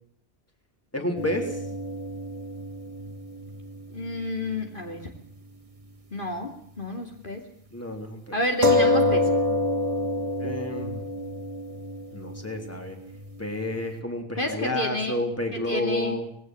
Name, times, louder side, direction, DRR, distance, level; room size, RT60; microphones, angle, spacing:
voice 1, 0.9-1.6 7.7-8.4 10.3-11.1 12.1-13.0 13.4-16.3, left 1 dB, 15° left, 4 dB, 3.6 m, -30 dB
sound 1, 1.2-5.0 5.3-5.4 8.6-13.8, left 2 dB, 30° right, 1.7 m, -28 dB
voice 2, 3.9-5.1 6.1-7.4 8.3-9.3 14.4-15.2 15.5-16.2, left 1 dB, 50° left, 3 dB, 3.1 m, -30 dB
20.0 x 17.5 x 7.9 m, 0.64 s
omnidirectional pair, 1.1 m